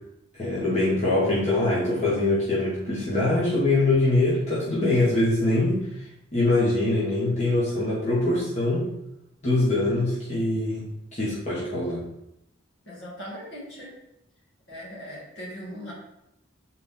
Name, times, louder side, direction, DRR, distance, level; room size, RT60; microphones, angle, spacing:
voice 1, 0.4-5.9 6.3-8.9 9.4-10.9 11.1-12.0, left 2 dB, 35° left, -9 dB, 1.9 m, -23 dB
voice 2, 12.9-13.9 14.7-15.9, equal, 60° left, -5 dB, 2.6 m, -39 dB
7.8 x 4.4 x 3.8 m, 0.82 s
head